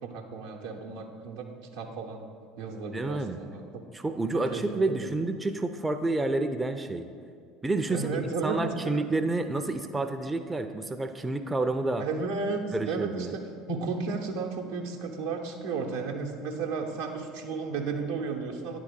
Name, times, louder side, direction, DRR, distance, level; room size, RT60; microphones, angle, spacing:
voice 1, 0.0-2.2 2.6-3.6 4.5-5.1 7.9-9.0 12.0-18.8, right 4 dB, 70° right, 2 dB, 0.8 m, -33 dB
voice 2, 2.9-3.4 3.9-7.1 7.6-12.1 12.7-13.3, right 2 dB, 15° right, 6 dB, 0.4 m, -29 dB
9.4 x 3.8 x 5.1 m, 2.4 s
figure-of-eight pair, 65°, 0 cm